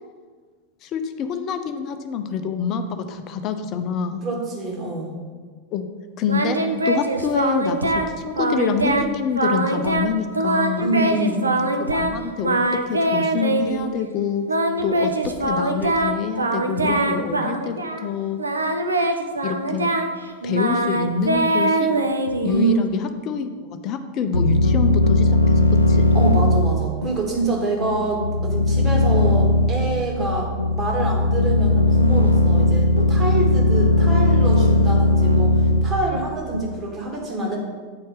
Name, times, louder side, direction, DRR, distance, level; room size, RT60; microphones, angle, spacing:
voice 1, 0.8-4.2 5.7-5.9 6.2-6.6 6.8-7.9 8.2-10.9 11.8-12.6 12.9-14.5 14.8-18.4 19.4-19.9 20.4-22.0 22.4-26.0 32.8-32.9, left 6 dB, 35° left, 8 dB, 0.7 m, -26 dB
voice 2, 4.2-5.1 10.8-11.5 22.5-22.8 26.1-37.6, right 2 dB, 25° right, 0 dB, 1.9 m, -26 dB
Singing, 6.3-8.1 8.4-9.1 9.3-10.1 10.3-12.1 12.4-13.9 14.5-18.1 18.4-22.8, right 2 dB, 80° right, 0.6 m, -23 dB
sound 1, 24.3-36.8, left 2 dB, 85° left, 0.5 m, -18 dB
8.5 x 4.4 x 4.7 m, 1.5 s
figure-of-eight pair, 90°, 0 cm